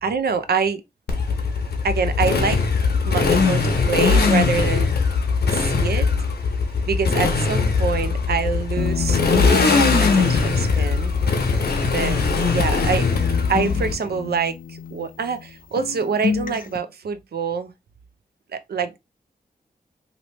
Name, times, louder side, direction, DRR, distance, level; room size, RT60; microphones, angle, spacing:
voice 1, 0.0-0.8 1.8-2.7 3.0-4.9 5.5-6.1 6.9-11.1 11.9-13.1 13.5-17.7 18.5-19.0, right 5 dB, 80° right, 0.5 m, -26 dB
Motorcycle, 1.1-13.9, left 4 dB, 85° left, 0.8 m, -20 dB
sound 1, 8.8-12.4 12.7-15.5 15.8-16.8, left 6 dB, 60° left, 0.5 m, -30 dB
2.9 x 2.7 x 3.1 m
wide cardioid pair, 70°, 16 cm